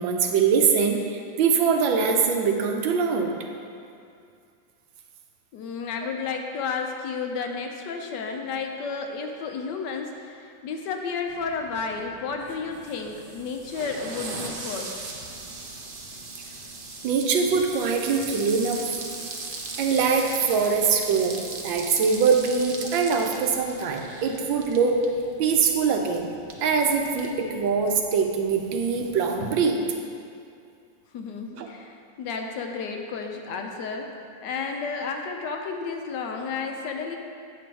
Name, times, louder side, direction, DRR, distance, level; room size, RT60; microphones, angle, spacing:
voice 1, 0.0-3.3 17.0-18.8 19.8-21.4 21.6-25.0 25.4-26.3 26.6-29.8 31.6-31.7, right 5 dB, 80° right, 3 dB, 1.5 m, -23 dB
voice 2, 5.5-15.0 31.1-34.1 34.4-37.2, left 5 dB, 70° left, 3 dB, 1.2 m, -32 dB
sound 1, 11.3-29.5, right 3 dB, 65° right, 0.5 m, -39 dB
8.6 x 6.0 x 4.6 m, 2.4 s
omnidirectional pair, 2.1 m